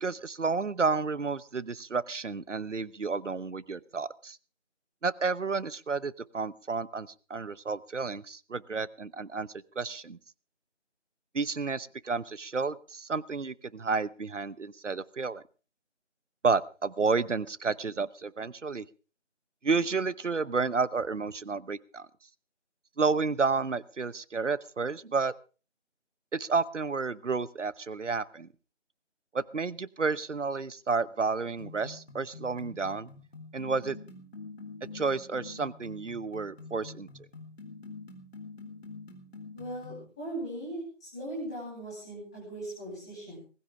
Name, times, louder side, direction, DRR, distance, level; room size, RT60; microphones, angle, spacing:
voice 1, 0.0-4.4 5.0-9.5 9.8-10.2 11.3-15.4 16.4-18.8 19.6-22.1 23.0-25.3 26.3-28.5 29.3-33.1 33.5-34.0 34.9-37.1, right 4 dB, 80° right, 18 dB, 1.0 m, -31 dB
sound 1, 31.6-40.1, left 4 dB, 60° left, 4.1 m, -46 dB
voice 2, 39.5-43.4, right 1 dB, 5° left, -10 dB, 2.7 m, -39 dB
19.5 x 15.5 x 3.6 m, 0.35 s
figure-of-eight pair, 175°, 36 cm